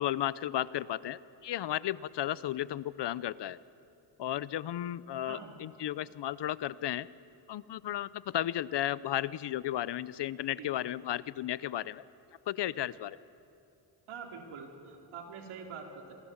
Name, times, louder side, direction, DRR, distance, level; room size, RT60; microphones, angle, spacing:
voice 1, 0.0-3.6 4.2-7.1 7.5-12.0 12.5-13.2, left 12 dB, 55° left, 18 dB, 0.7 m, -34 dB
voice 2, 14.1-16.1, right 5 dB, 75° right, 1 dB, 4.5 m, -45 dB
26.5 x 24.5 x 7.3 m, 2.7 s
cardioid pair, 105°, 49 cm